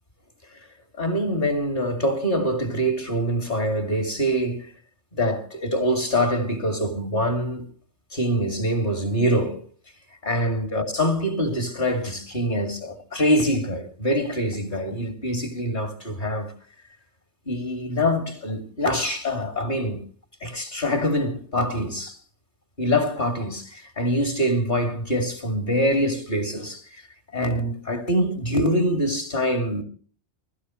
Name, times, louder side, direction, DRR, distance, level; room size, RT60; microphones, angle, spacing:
voice 1, 1.0-4.7 5.1-7.7 8.1-9.6 10.2-16.5 17.5-20.0 20.4-22.2 22.8-27.0 27.3-29.8, equal, 40° left, 2.8 m, -24 dB
23.0 x 14.0 x 3.1 m
omnidirectional pair, 1.2 m